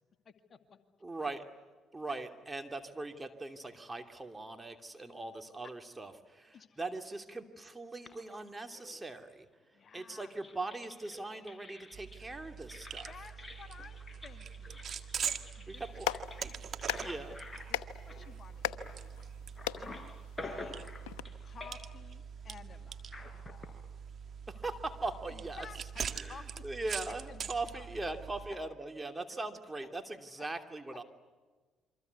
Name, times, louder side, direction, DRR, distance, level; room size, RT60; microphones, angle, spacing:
voice 1, 0.3-0.8 1.2-1.3 2.1-2.2 6.5-6.8 9.7-10.4 13.1-14.8 15.3-16.0 16.4-17.4 17.7-19.2 19.8-20.2 20.4-20.9 21.4-23.1 25.3-26.6 27.1-27.9, left 6 dB, 45° left, 7 dB, 2.2 m, -54 dB
voice 2, 1.0-1.4 1.9-9.5 9.9-13.1 15.8-16.1 16.4-16.5 17.0-17.4 24.5-25.7 26.1-31.0, right 2 dB, 20° right, 6 dB, 2.9 m, -40 dB
sound 1, 8.0-9.3 9.9-19.3 19.6-21.3 21.6-22.0 23.0-23.7, left 2 dB, 15° left, 5.3 m, -49 dB
sound 2, 11.9-28.5, right 7 dB, 50° right, 1.9 m, -43 dB
Clapping, 15.7-21.2, left 12 dB, 75° left, 1.0 m, -40 dB
28.0 x 24.5 x 8.3 m, 1.4 s
hypercardioid pair, 50°, 0 cm